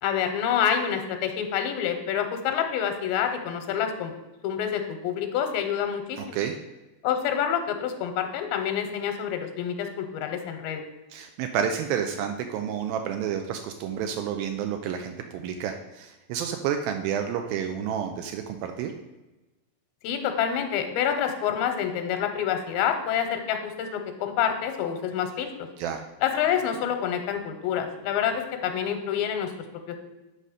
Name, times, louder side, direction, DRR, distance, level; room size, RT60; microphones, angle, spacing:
voice 1, 0.0-4.1 4.4-6.4 7.0-10.8 20.0-25.5 26.2-29.5 29.9-30.0, left 8 dB, 80° left, 6 dB, 2.5 m, -27 dB
voice 2, 6.2-6.6 11.1-18.9 25.8-26.0, right 8 dB, 85° right, 5 dB, 2.3 m, -30 dB
8.3 x 4.2 x 6.4 m, 1.1 s
omnidirectional pair, 4.3 m